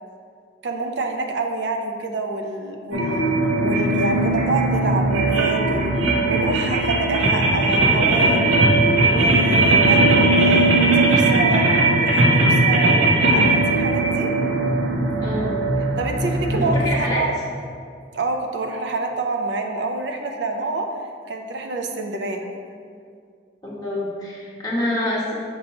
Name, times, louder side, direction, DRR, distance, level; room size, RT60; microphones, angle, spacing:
voice 1, 0.6-8.4 9.1-11.6 11.9-13.0 13.3-14.3 16.0-17.3 18.1-20.9 21.3-22.4, right 3 dB, 70° right, 3 dB, 0.5 m, -27 dB
sound 1, 2.9-16.9, right 2 dB, 90° right, 0.9 m, -18 dB
voice 2, 15.2-15.6 16.5-17.3 23.6-25.3, left 1 dB, 20° left, -6 dB, 1.2 m, -26 dB
6.8 x 2.9 x 5.2 m, 2.2 s
head